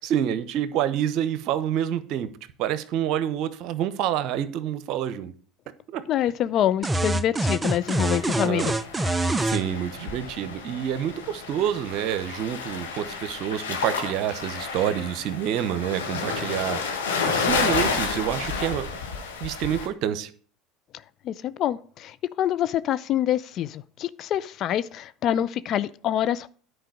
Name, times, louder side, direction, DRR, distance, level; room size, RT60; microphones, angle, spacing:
voice 1, 0.0-2.3 2.6-5.3 5.9-6.0 8.4-8.7 9.4-16.8 17.2-18.9 19.4-20.3, right 10 dB, 60° right, 1.0 m, -27 dB
voice 2, 6.1-8.7 21.2-26.5, left 11 dB, 50° left, 0.6 m, -26 dB
sound 1, 6.8-9.6, right 2 dB, 15° right, 0.6 m, -25 dB
sound 2, 7.8-19.9, left 5 dB, 85° left, 1.6 m, -31 dB
10.5 x 4.9 x 7.8 m
hypercardioid pair, 75°, 0 cm